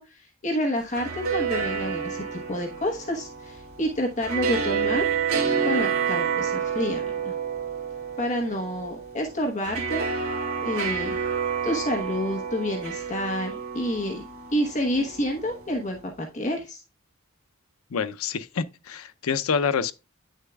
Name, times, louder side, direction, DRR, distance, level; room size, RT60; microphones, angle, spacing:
voice 1, 0.0-5.0 5.6-7.3 8.2-10.0 10.6-11.2 11.6-14.2 14.5-16.8, equal, 35° left, 1.2 m, -29 dB
sound 1, 0.8-16.0, right 6 dB, 75° right, 2.5 m, -29 dB
voice 2, 17.9-19.9, left 6 dB, 90° left, 0.6 m, -27 dB
9.1 x 6.5 x 2.3 m
head